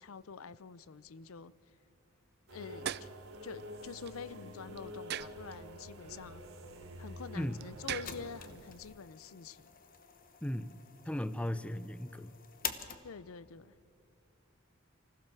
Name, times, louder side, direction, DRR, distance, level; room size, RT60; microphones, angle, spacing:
voice 1, 0.0-1.5 2.5-3.1 3.4-6.4 7.0-9.7 13.0-13.7, left 5 dB, 90° left, 19 dB, 0.6 m, -47 dB
sound 1, 2.5-8.9, right 10 dB, 50° right, 0.4 m, -46 dB
sound 2, 2.5-8.5, equal, 85° right, 3.3 m, -48 dB
sound 3, 8.0-13.4, left 8 dB, 45° left, 1.1 m, -47 dB
voice 2, 10.4-10.8 11.1-12.3, left 1 dB, 5° left, 15 dB, 0.4 m, -36 dB
25.0 x 15.5 x 6.9 m, 2.7 s
head